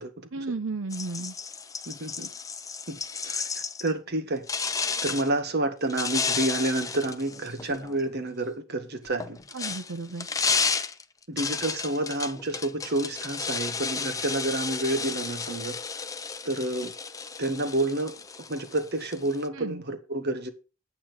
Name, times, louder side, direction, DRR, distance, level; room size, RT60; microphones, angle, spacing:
voice 1, 0.3-1.3 9.5-10.3 19.5-19.8, right 3 dB, 85° right, 0.8 m, -33 dB
sound 1, 0.9-3.9 4.5-5.3 5.9-8.0 9.1-19.5, left 5 dB, 15° left, 0.6 m, -32 dB
voice 2, 1.9-2.3 2.9-3.0 3.2-4.5 5.0-9.4 11.3-15.8 16.4-16.9 17.4-18.1 18.5-20.5, right 2 dB, 55° right, 1.6 m, -29 dB
8.8 x 8.5 x 5.1 m
head